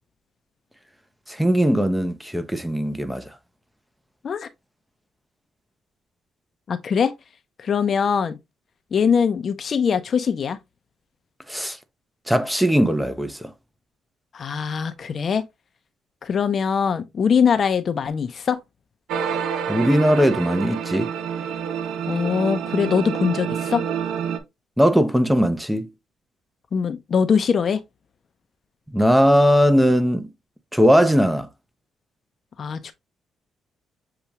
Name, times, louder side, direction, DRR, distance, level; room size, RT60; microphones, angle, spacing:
voice 1, 1.3-3.4 11.5-11.8 12.3-13.5 19.7-21.1 24.8-25.9 28.9-30.3 30.7-31.5, equal, 5° right, 0.6 m, -19 dB
voice 2, 6.7-7.1 7.6-8.4 8.9-10.6 14.3-15.4 16.2-18.6 22.1-23.8 26.7-27.8 32.6-32.9, left 6 dB, 50° left, 0.6 m, -22 dB
sound 1, 19.1-24.4, right 7 dB, 80° right, 0.7 m, -28 dB
6.8 x 2.4 x 2.9 m
cardioid pair, 90°, 0 cm